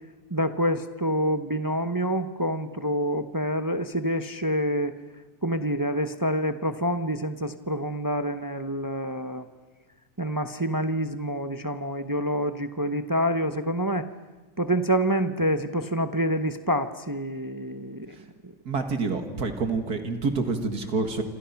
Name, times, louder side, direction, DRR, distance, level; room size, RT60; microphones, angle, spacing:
voice 1, 0.3-4.9 5.4-9.5 10.2-14.1 14.6-18.1 18.4-18.5, equal, 20° right, 10 dB, 0.5 m, -27 dB
voice 2, 18.7-21.2, right 4 dB, 65° right, 6 dB, 2.5 m, -27 dB
27.0 x 26.5 x 5.9 m, 1.3 s
omnidirectional pair, 1.8 m